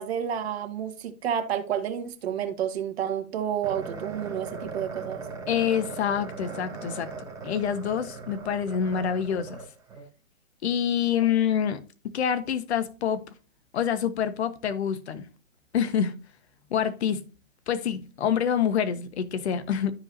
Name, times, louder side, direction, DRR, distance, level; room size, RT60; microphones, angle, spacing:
voice 1, 0.0-5.2 11.2-11.3, right 9 dB, 50° right, 2.0 m, -30 dB
sound 1, 3.6-10.1, right 4 dB, 5° right, 2.8 m, -39 dB
voice 2, 5.5-7.1 7.4-9.6 10.6-13.2 13.7-15.3 15.7-16.1 16.7-17.2 17.7-19.9, left 8 dB, 55° left, 1.2 m, -26 dB
13.0 x 4.9 x 2.7 m
hypercardioid pair, 135°, 40 cm